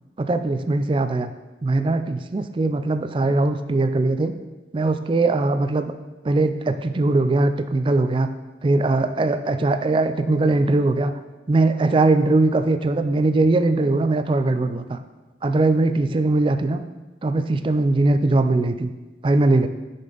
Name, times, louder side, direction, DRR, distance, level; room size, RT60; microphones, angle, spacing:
voice 1, 0.2-1.3 1.6-4.3 4.7-5.9 6.2-8.3 8.6-11.1 11.5-15.0 15.4-16.8 17.2-18.9 19.2-19.7, right 2 dB, 30° right, 10 dB, 0.3 m, -20 dB
7.5 x 5.3 x 3.9 m, 1.1 s
head